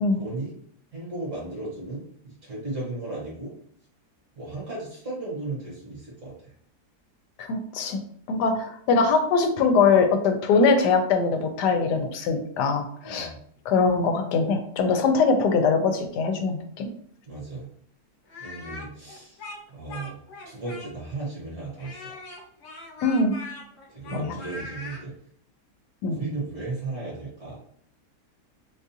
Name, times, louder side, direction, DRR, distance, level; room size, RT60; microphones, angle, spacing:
voice 1, 0.1-0.6 0.9-3.5 4.3-6.5 13.0-13.4 17.3-17.7 18.4-19.4 19.7-20.2 20.4-22.2 23.9-25.1 26.1-27.6, right 2 dB, 50° right, -5 dB, 1.6 m, -35 dB
voice 2, 7.4-8.0 8.3-13.3 13.7-16.9 23.0-23.3 24.1-24.3 26.0-26.2, left 4 dB, 80° left, 6 dB, 1.2 m, -22 dB
Speech, 18.3-21.2 21.8-25.0, left 2 dB, 55° left, 1.0 m, -41 dB
4.0 x 2.4 x 2.7 m, 0.62 s
omnidirectional pair, 1.8 m